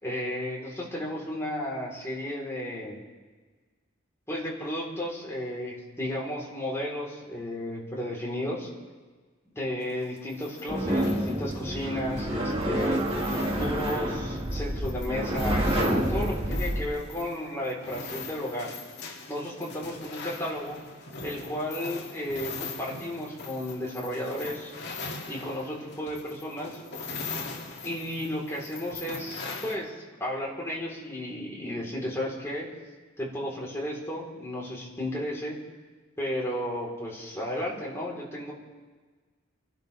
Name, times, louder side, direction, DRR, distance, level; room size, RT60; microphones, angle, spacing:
voice 1, 0.0-3.0 4.3-8.7 9.5-13.2 13.5-18.7 19.3-20.8 21.2-24.7 25.3-26.8 27.8-32.7 33.2-35.6 36.2-38.5, left 1 dB, 15° left, -5 dB, 3.8 m, -33 dB
sound 1, 9.8-29.8, left 3 dB, 60° left, 2.2 m, -41 dB
sound 2, 10.7-16.9, equal, 30° right, 1.7 m, -28 dB
26.5 x 12.0 x 3.4 m, 1.4 s
head